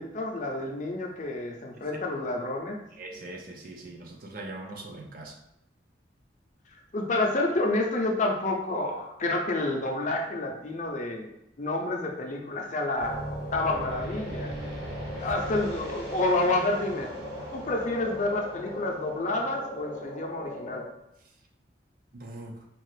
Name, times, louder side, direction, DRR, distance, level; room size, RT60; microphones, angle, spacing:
voice 1, 0.0-2.8 6.9-11.3 11.6-14.5 15.2-17.1 17.5-20.9, left 2 dB, 40° left, 1 dB, 0.6 m, -29 dB
voice 2, 3.0-5.4 22.1-22.6, right 2 dB, 50° right, 1 dB, 0.6 m, -41 dB
sound 1, 13.0-20.8, equal, 70° right, 1.5 m, -37 dB
4.4 x 2.4 x 3.2 m, 0.82 s
head